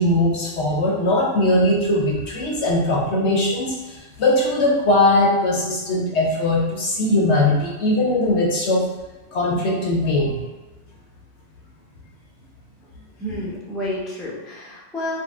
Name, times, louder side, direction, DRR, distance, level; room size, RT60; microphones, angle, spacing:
voice 1, 0.0-8.9 9.3-10.4, left 1 dB, 65° left, -1 dB, 0.9 m, -20 dB
voice 2, 13.2-15.2, left 1 dB, ahead, -6 dB, 0.6 m, -30 dB
4.3 x 2.3 x 3.5 m, 1.2 s
omnidirectional pair, 1.4 m